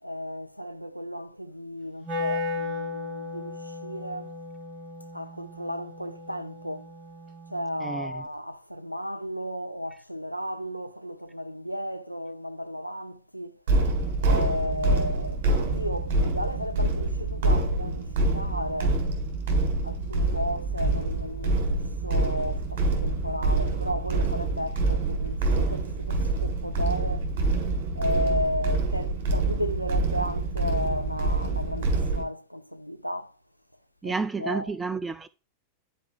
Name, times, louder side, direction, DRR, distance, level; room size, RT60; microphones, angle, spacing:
voice 1, 0.0-4.4 5.1-6.9 7.5-13.6 14.2-19.0 19.8-27.4 27.9-33.4 34.0-34.8, equal, 90° left, 0.3 m, -34 dB
Wind instrument woodwind instrument, 2.0-8.1, left 3 dB, 30° right, 2.0 m, -36 dB
voice 2, 7.8-8.1 34.0-35.3, right 4 dB, 15° right, 0.3 m, -30 dB
sound 1, 13.7-32.2, right 2 dB, 50° right, 1.8 m, -26 dB
10.0 x 4.5 x 2.6 m
figure-of-eight pair, 90°, 0 cm